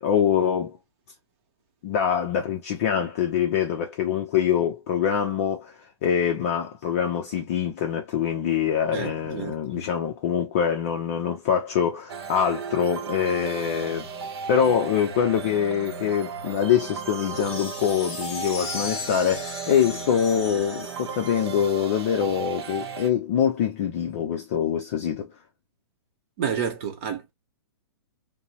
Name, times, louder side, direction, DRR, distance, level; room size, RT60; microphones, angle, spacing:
voice 1, 0.0-0.8 1.8-14.1 14.5-25.3, left 8 dB, 30° left, 0.5 m, -24 dB
voice 2, 8.9-9.9 26.4-27.3, right 7 dB, 30° right, 0.8 m, -30 dB
sound 1, 12.1-23.1, right 6 dB, 65° right, 0.8 m, -35 dB
sound 2, 17.0-21.7, left 3 dB, 5° left, 0.8 m, -37 dB
2.8 x 2.0 x 2.8 m
hypercardioid pair, 170°, 14 cm